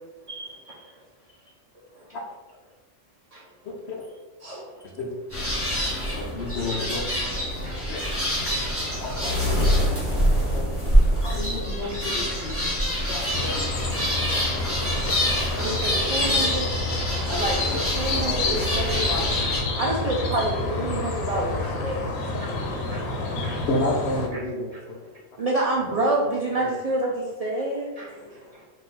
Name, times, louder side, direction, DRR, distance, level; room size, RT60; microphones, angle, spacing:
voice 1, 3.6-4.0 5.0-5.1 6.2-7.0 7.7-8.0 9.0-9.3 10.1-10.2 10.5-10.7 11.2-12.6 13.0-13.8 16.2-16.7 17.3-17.4 18.1-19.2 23.7-25.0 26.6-26.7 28.1-28.3, left 2 dB, 60° left, 0 dB, 0.9 m, -31 dB
voice 2, 4.4-4.9 5.6-6.0 6.4-6.8 7.6-8.1 8.6-8.7 9.6-9.7 11.0-11.9 12.4-13.0 19.0-19.1 20.2-20.3 21.6-21.7 22.3-23.0 23.3-23.7 24.3-24.5 24.7-24.8 25.1-25.2 28.0-28.6, right 1 dB, 35° right, -3 dB, 0.9 m, -46 dB
sound 1, 5.3-19.6, equal, 10° right, 1.2 m, -25 dB
sound 2, 13.3-24.3, left 3 dB, 85° left, 1.1 m, -29 dB
voice 3, 15.5-16.7 17.4-17.6 17.9-19.1 19.8-22.1 25.4-28.1, right 2 dB, 70° right, -4 dB, 0.3 m, -27 dB
3.9 x 2.6 x 4.0 m, 1.2 s
omnidirectional pair, 1.4 m